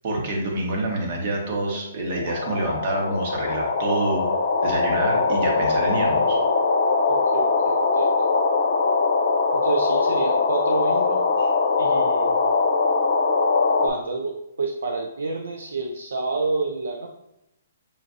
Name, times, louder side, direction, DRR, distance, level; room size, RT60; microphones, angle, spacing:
voice 1, 0.0-4.3 4.6-6.4, right 2 dB, 50° right, 0 dB, 1.1 m, -27 dB
sound 1, 1.7-1.8 2.1-13.9, left 4 dB, 70° left, 0.6 m, -21 dB
voice 2, 7.1-8.3 9.5-11.5 11.8-12.5 13.8-17.1, right 3 dB, 85° right, 2 dB, 0.5 m, -29 dB
5.7 x 2.5 x 2.5 m, 0.83 s
hypercardioid pair, 140°, 0 cm